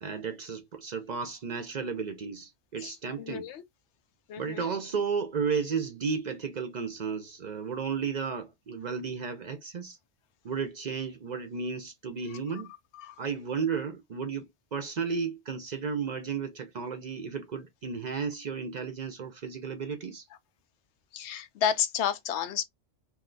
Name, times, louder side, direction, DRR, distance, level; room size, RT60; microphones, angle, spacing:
voice 1, 0.0-3.5 4.4-10.0 10.4-12.7 13.2-20.2, right 5 dB, 55° right, 0.5 m, -33 dB
voice 2, 2.8-3.6 4.3-4.7 12.9-13.1 21.1-22.6, left 8 dB, 85° left, 0.9 m, -31 dB
2.7 x 2.1 x 3.7 m
omnidirectional pair, 1.1 m